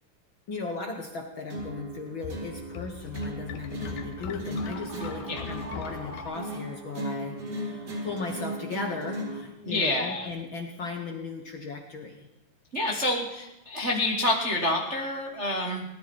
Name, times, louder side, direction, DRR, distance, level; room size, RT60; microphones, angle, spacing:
voice 1, 0.5-12.3, left 4 dB, 60° left, 3 dB, 1.3 m, -37 dB
sound 1, 1.5-9.5, right 1 dB, 55° right, 4.7 m, -37 dB
sound 2, 1.6-6.2, left 7 dB, 75° left, 2.4 m, -41 dB
Screaming, 4.6-7.3, right 1 dB, 25° right, 1.4 m, -45 dB
voice 2, 9.6-10.3 12.7-15.8, left 1 dB, 80° right, 1 dB, 0.6 m, -28 dB
19.0 x 12.5 x 4.3 m, 0.98 s
omnidirectional pair, 3.9 m